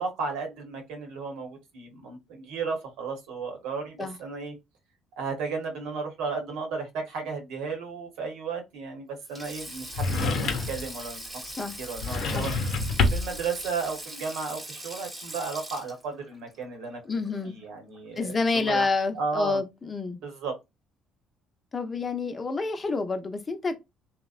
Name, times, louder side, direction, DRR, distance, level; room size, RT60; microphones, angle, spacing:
voice 1, 0.0-4.5 5.2-11.2 11.5-12.5 13.1-17.2 17.4-18.9 19.1-19.6 20.2-20.5, right 4 dB, 80° right, 1.0 m, -34 dB
Sink (filling or washing), 9.2-17.7 17.9-18.2 19.4-19.6, right 1 dB, 20° right, 1.0 m, -41 dB
sound 1, 9.9-10.9 12.0-13.4, left 3 dB, 65° left, 0.8 m, -26 dB
voice 2, 11.4-11.8 12.3-12.5 17.0-17.6 18.2-20.2 21.7-23.8, left 3 dB, 30° left, 0.6 m, -28 dB
2.8 x 2.1 x 2.4 m
supercardioid pair, 80°, 0 cm